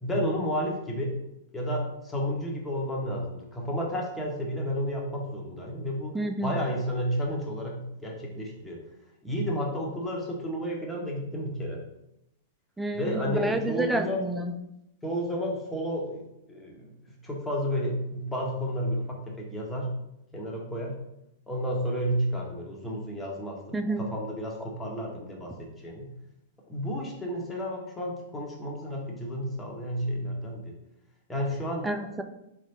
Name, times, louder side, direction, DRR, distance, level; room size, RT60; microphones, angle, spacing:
voice 1, 0.0-1.1 1.5-6.1 6.4-8.8 9.2-11.8 12.9-14.2 15.0-16.2 16.5-19.9 20.3-20.9 21.5-26.1 26.7-30.7 31.3-31.9, equal, 10° left, -2 dB, 1.2 m, -31 dB
voice 2, 6.1-6.5 12.8-14.5 23.7-24.1 31.8-32.2, right 1 dB, 5° right, 6 dB, 0.5 m, -29 dB
3.6 x 3.4 x 4.0 m, 0.85 s
hypercardioid pair, 105°, 0 cm